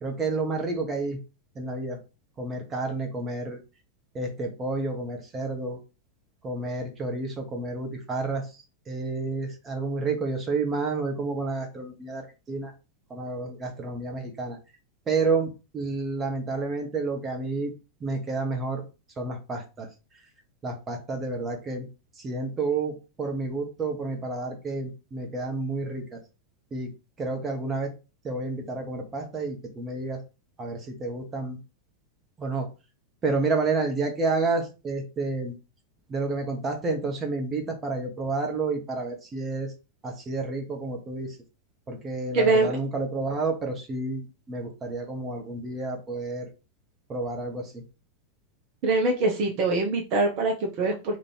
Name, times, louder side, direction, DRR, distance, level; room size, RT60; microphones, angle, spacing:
voice 1, 0.0-1.2 1.5-2.0 2.4-3.6 4.1-5.8 6.4-12.7 13.1-14.6 15.1-17.7 18.0-18.8 19.2-19.9 20.6-21.9 22.2-26.2 26.7-26.9 27.2-27.9 28.2-30.2 30.6-31.6 32.4-32.7 33.2-35.5 36.1-39.7 40.0-41.4 41.9-46.5 47.1-47.8, right 3 dB, 20° right, 3 dB, 1.1 m, -30 dB
voice 2, 42.3-42.7 48.8-51.2, right 3 dB, 40° right, 1 dB, 0.8 m, -23 dB
3.0 x 2.6 x 4.4 m, 0.31 s
figure-of-eight pair, 90°, 0 cm